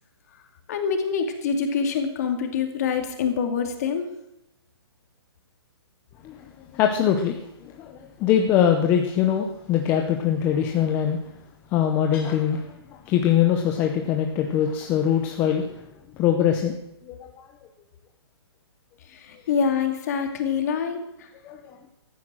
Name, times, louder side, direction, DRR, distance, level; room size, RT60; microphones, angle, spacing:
voice 1, 0.7-4.1 19.1-21.3, left 6 dB, 35° left, 5 dB, 2.4 m, -25 dB
voice 2, 6.2-11.3 11.7-15.8 16.1-16.8 17.0-17.5 21.4-21.8, left 9 dB, 15° left, 4 dB, 0.6 m, -23 dB
15.0 x 13.0 x 6.2 m, 0.84 s
hypercardioid pair, 170°, 14 cm